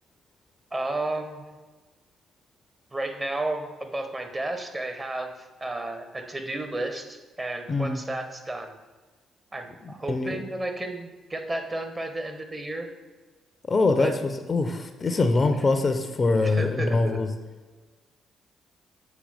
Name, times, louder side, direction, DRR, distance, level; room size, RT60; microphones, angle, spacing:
voice 1, 0.7-1.4 2.9-8.8 9.5-12.9 14.0-14.1 16.4-17.2, right 2 dB, 25° right, 6 dB, 1.0 m, -32 dB
voice 2, 7.7-8.0 9.8-10.4 13.7-14.1 14.5-17.3, left 3 dB, 40° left, 7 dB, 0.6 m, -23 dB
7.3 x 4.7 x 3.4 m, 1.3 s
hypercardioid pair, 45°, 0 cm